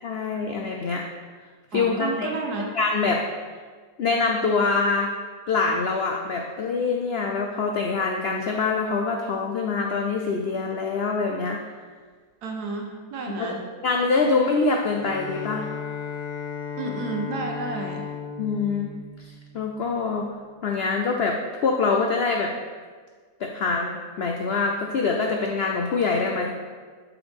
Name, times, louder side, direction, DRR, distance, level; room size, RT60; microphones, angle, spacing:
voice 1, 0.0-1.1 1.7-3.2 4.0-5.1 5.5-11.6 13.4-13.6 13.8-15.7 18.4-18.9 19.2-20.2 20.6-22.5 23.4-26.5, left 4 dB, 80° left, 2 dB, 0.5 m, -25 dB
voice 2, 1.7-2.7 12.4-13.6 16.8-18.1, right 3 dB, 70° right, 2 dB, 1.4 m, -31 dB
Bowed string instrument, 14.4-19.9, left 6 dB, 60° left, 1.8 m, -35 dB
7.7 x 6.0 x 3.5 m, 1.6 s
omnidirectional pair, 1.8 m